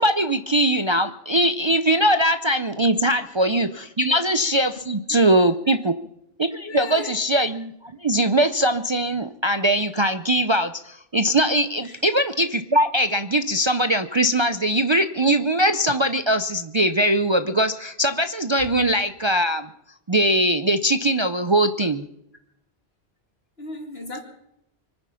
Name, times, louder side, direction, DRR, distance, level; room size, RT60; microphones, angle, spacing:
voice 1, 0.0-5.9 6.4-7.7 8.0-19.7 20.1-22.1, right 1 dB, 35° right, 0.5 m, -21 dB
voice 2, 6.6-7.2 11.8-12.0 23.6-24.2, left 2 dB, 70° left, 2.9 m, -37 dB
24.5 x 9.8 x 5.7 m
omnidirectional pair, 1.1 m